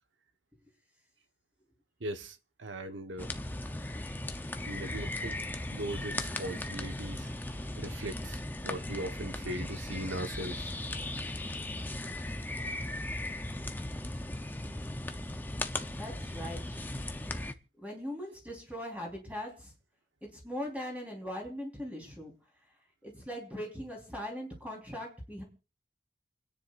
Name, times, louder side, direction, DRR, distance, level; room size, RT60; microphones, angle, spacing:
voice 1, 2.0-3.3 4.7-5.4 5.7-7.3 7.8-10.7, right 1 dB, 90° right, 1.2 m, -39 dB
sound 1, 3.2-17.5, left 1 dB, 10° left, 0.7 m, -37 dB
voice 2, 16.0-16.9 17.8-19.7 20.3-22.3 23.0-25.4, equal, 10° right, 4.0 m, -40 dB
29.0 x 9.9 x 2.5 m
head